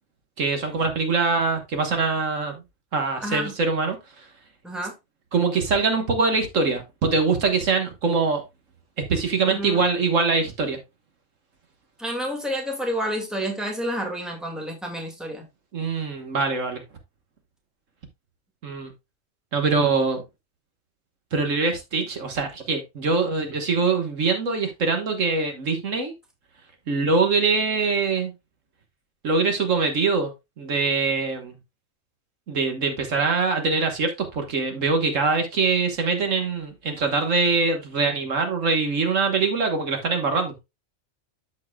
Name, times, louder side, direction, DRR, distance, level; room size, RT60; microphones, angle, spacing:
voice 1, 0.4-2.6 2.9-4.3 5.3-8.4 9.0-10.8 15.7-16.8 18.6-18.9 19.5-20.2 21.3-26.1 26.9-28.3 29.2-30.3 30.6-31.6 32.5-40.6, right 4 dB, 65° right, 1.7 m, -23 dB
voice 2, 3.2-3.5 4.6-4.9 9.5-9.8 12.0-15.5, equal, ahead, 1.8 m, -29 dB
13.0 x 4.7 x 2.2 m
omnidirectional pair, 1.4 m